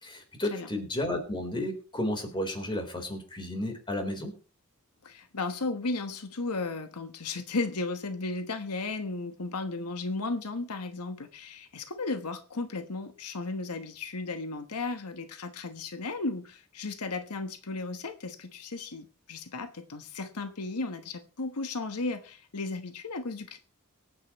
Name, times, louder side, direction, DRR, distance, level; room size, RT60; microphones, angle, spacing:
voice 1, 0.0-4.3, left 1 dB, 20° left, 4.0 m, -32 dB
voice 2, 5.0-23.6, left 3 dB, 90° left, 1.2 m, -35 dB
24.5 x 9.5 x 3.1 m
head